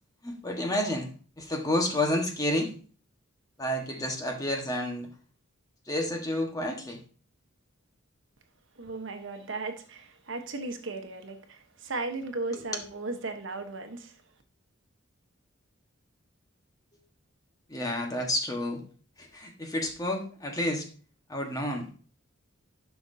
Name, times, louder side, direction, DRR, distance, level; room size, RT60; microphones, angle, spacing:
voice 1, 0.2-2.7 3.6-5.1 5.9-7.0 12.5-12.8 17.7-18.8 19.2-20.9 21.3-22.0, left 1 dB, 20° left, 1.4 m, -30 dB
voice 2, 8.8-14.1, right 3 dB, 65° right, 1.1 m, -36 dB
11.5 x 5.9 x 2.7 m
head